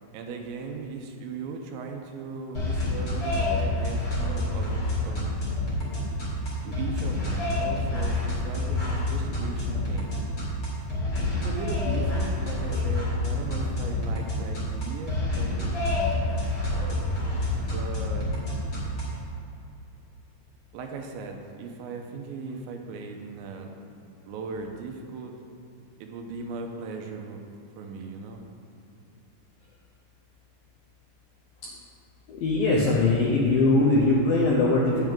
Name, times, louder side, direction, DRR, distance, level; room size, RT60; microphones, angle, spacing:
voice 1, 0.1-5.3 6.6-10.2 11.3-15.7 17.6-18.3 20.7-23.7 24.3-25.4 26.0-27.4 27.8-28.4, right 4 dB, 85° right, 3 dB, 2.9 m, -38 dB
sound 1, 2.5-19.2, left 2 dB, 40° left, 1.7 m, -28 dB
voice 2, 32.3-35.1, left 2 dB, 80° left, -4 dB, 2.1 m, -21 dB
8.9 x 8.9 x 3.6 m, 2.7 s
omnidirectional pair, 5.3 m